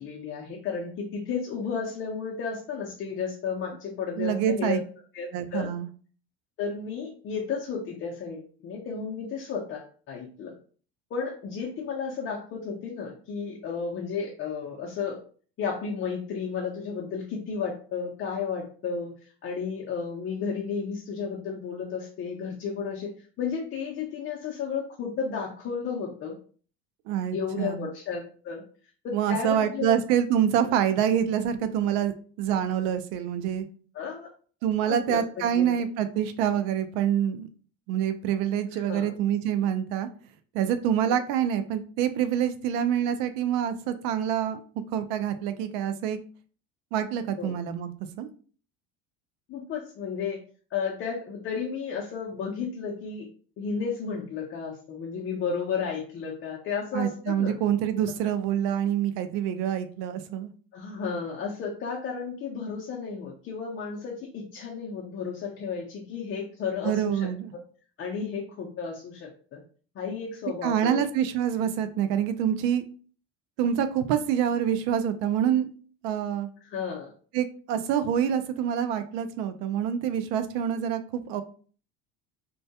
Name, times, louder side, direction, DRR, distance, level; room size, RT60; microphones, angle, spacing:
voice 1, 0.0-4.8 5.1-5.7 6.6-10.5 11.1-15.2 15.6-19.1 19.4-26.4 27.3-28.6 29.0-30.0 30.6-30.8 33.9-34.3 34.9-35.8 38.7-39.1 41.1-41.2 47.4-47.5 49.5-50.4 50.7-53.3 53.6-57.6 60.7-67.6 68.0-69.6 69.9-71.0 76.7-77.1, left 6 dB, 40° left, -3 dB, 0.5 m, -33 dB
voice 2, 4.2-4.8 5.3-5.9 27.1-27.9 29.1-33.7 34.6-37.5 37.9-40.1 40.5-44.6 44.9-46.2 46.9-47.9 48.2-48.3 56.9-60.5 66.8-67.5 70.6-72.8 73.6-75.7 76.0-76.5 77.3-81.4, right 9 dB, 75° right, 10 dB, 0.5 m, -26 dB
2.2 x 2.2 x 2.7 m, 0.41 s
supercardioid pair, 110°, 31 cm